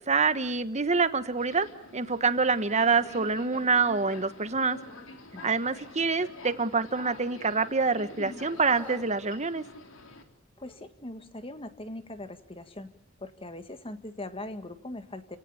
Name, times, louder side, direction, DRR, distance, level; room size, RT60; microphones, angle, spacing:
voice 1, 0.0-1.7 1.9-4.8 5.4-9.6, right 4 dB, 35° right, 12 dB, 1.4 m, -26 dB
Subway metro underground, 1.3-10.2, left 2 dB, 80° left, 3.5 m, -47 dB
Screaming, 8.5-9.1 10.6-10.8, equal, 5° left, 2.9 m, -46 dB
voice 2, 10.6-12.9 13.2-15.4, left 1 dB, 30° left, 10 dB, 1.8 m, -41 dB
30.0 x 18.0 x 8.6 m, 0.73 s
head